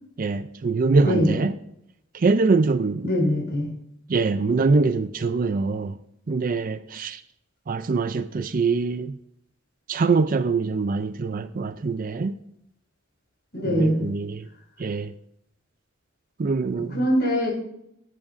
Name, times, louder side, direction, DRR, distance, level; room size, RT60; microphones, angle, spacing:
voice 1, 0.2-1.5 2.1-3.1 4.1-5.9 6.3-7.2 7.7-9.2 9.9-12.3 13.6-14.4 14.8-15.1 16.4-17.0, right 4 dB, 35° right, 0.4 m, -23 dB
voice 2, 1.0-1.3 3.0-3.7 13.5-14.0 16.9-17.5, equal, 50° left, 5.2 m, -22 dB
18.5 x 9.7 x 2.6 m
head